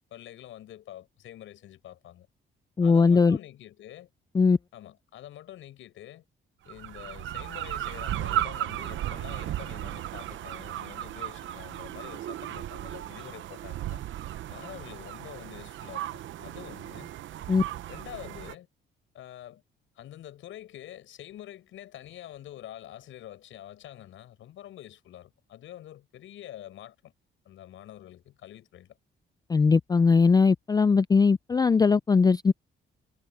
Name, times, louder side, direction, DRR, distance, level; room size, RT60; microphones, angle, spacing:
voice 1, 0.1-2.3 2.8-4.1 4.7-6.2 6.7-14.0 14.5-17.1 17.9-18.7 19.1-19.6 20.0-27.1 27.5-29.0, left 12 dB, 80° left, 7.1 m, -46 dB
voice 2, 2.8-3.4 4.3-4.6 17.5-17.6 29.5-32.5, left 4 dB, 20° left, 0.4 m, -20 dB
sound 1, 6.7-18.5, right 12 dB, 75° right, 0.8 m, -35 dB
cardioid pair, 90°, 20 cm